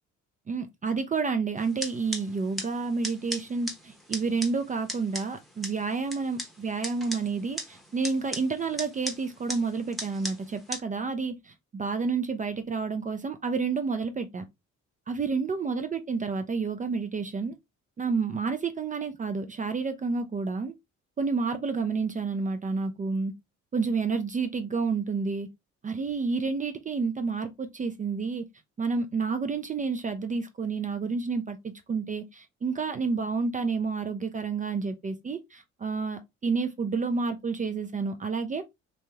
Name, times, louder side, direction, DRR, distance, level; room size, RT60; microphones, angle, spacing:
voice 1, 0.5-14.5 15.1-17.6 18.0-20.7 21.2-23.3 23.7-25.5 25.8-28.4 28.8-38.6, right 4 dB, 25° right, 0.4 m, -30 dB
sound 1, 1.6-10.8, equal, ahead, 0.8 m, -39 dB
3.1 x 2.6 x 2.2 m
cardioid pair, 90°, 30 cm